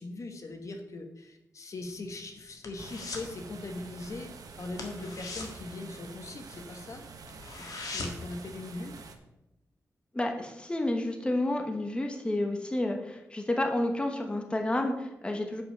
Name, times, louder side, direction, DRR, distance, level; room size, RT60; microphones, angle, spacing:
voice 1, 0.0-4.3 4.6-7.0 7.6-8.9, left 2 dB, 55° left, 5 dB, 1.3 m, -40 dB
sound 1, 1.8-3.4 3.6-3.9 4.2-4.3 4.7-6.6 6.9-7.0 7.3-8.4 8.7-8.8, left 3 dB, 75° left, 1.7 m, -40 dB
sound 2, 2.8-9.2, right 4 dB, 75° right, 1.1 m, -47 dB
voice 2, 10.1-15.6, left 1 dB, 15° left, 3 dB, 1.1 m, -30 dB
8.0 x 5.5 x 6.7 m, 0.92 s
wide cardioid pair, 105°, 6 cm